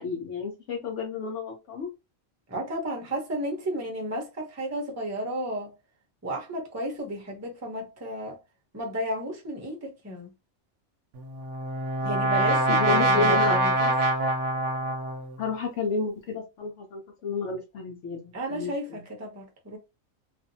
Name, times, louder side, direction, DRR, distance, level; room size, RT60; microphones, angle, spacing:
voice 1, 0.0-1.9 12.7-13.6 15.4-19.0, left 4 dB, 65° left, 0.9 m, -31 dB
voice 2, 2.5-5.7 6.2-8.4 8.7-10.3 12.0-13.9 18.3-19.8, right 1 dB, 20° right, 0.5 m, -33 dB
Brass instrument, 11.2-15.4, right 1 dB, 70° right, 0.9 m, -24 dB
2.6 x 2.4 x 2.6 m
omnidirectional pair, 1.4 m